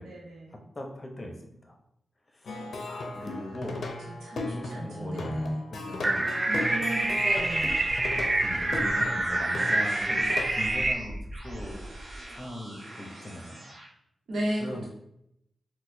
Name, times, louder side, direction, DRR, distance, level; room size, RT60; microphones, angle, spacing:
voice 1, 0.0-0.6 3.2-3.8 4.0-5.6 6.5-7.7 14.3-14.9, right 1 dB, 80° right, -5 dB, 0.9 m, -35 dB
voice 2, 0.8-1.8 2.3-3.8 4.4-6.3 8.1-11.2 11.4-11.8 12.3-13.6 14.6-14.8, left 1 dB, 35° left, 2 dB, 0.7 m, -40 dB
Plucked string instrument, 2.5-10.7, left 2 dB, 75° left, 0.5 m, -37 dB
sound 1, 6.0-10.9, right 2 dB, 35° right, 0.4 m, -26 dB
sound 2, 6.5-13.9, right 1 dB, 55° right, 0.9 m, -43 dB
4.1 x 2.2 x 2.6 m, 0.77 s
cardioid pair, 55°, 0 cm